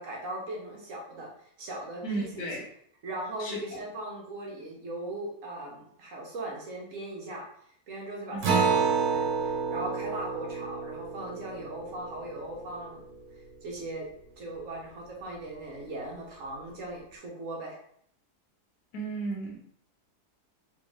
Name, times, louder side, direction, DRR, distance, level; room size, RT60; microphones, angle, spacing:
voice 1, 0.0-2.5 3.0-7.5 7.9-13.0 13.6-14.1 14.4-17.8, right 1 dB, 55° right, -2 dB, 1.1 m, -39 dB
voice 2, 2.0-2.6 3.4-3.8 8.3-8.4 18.9-19.6, right 2 dB, 65° left, -1 dB, 1.3 m, -34 dB
Acoustic guitar, 8.4-13.3, right 5 dB, 80° right, 1.4 m, -30 dB
3.5 x 2.4 x 3.2 m, 0.65 s
omnidirectional pair, 1.8 m